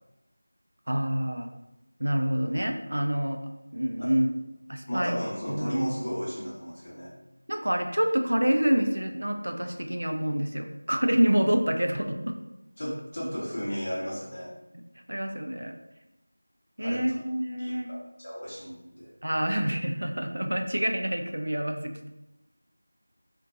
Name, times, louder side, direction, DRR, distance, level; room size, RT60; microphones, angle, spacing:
voice 1, 0.9-1.5 2.0-3.4 3.7-4.3 4.7-5.2 5.5-5.7 7.5-12.4 15.1-15.7 16.8-17.9 19.2-22.1, equal, 75° right, 5 dB, 0.4 m, -27 dB
voice 2, 4.9-7.1 12.8-14.5 16.8-17.2 17.6-19.1, equal, 40° left, -7 dB, 0.9 m, -34 dB
2.7 x 2.2 x 2.5 m, 0.95 s
figure-of-eight pair, 175°, 0 cm